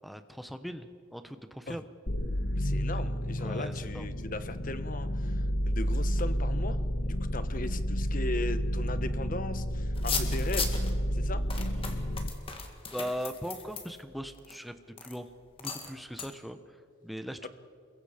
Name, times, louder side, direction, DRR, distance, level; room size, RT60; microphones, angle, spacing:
voice 1, 0.0-1.8 2.9-3.0 3.4-4.0 11.3-12.1 12.9-14.8 15.0-15.3 15.6-16.6 17.0-17.5, equal, ahead, 9 dB, 1.0 m, -40 dB
sound 1, 2.1-12.3, equal, 60° left, 1.5 m, -31 dB
voice 2, 2.5-10.8 11.1-11.4 17.4-17.5, left 2 dB, 45° left, 11 dB, 1.0 m, -38 dB
sound 2, 9.9-10.9 11.5-14.6 15.0-15.2 15.6-15.9 16.2-16.3, left 5 dB, 30° left, 2.1 m, -36 dB
28.0 x 22.5 x 5.1 m, 2.2 s
head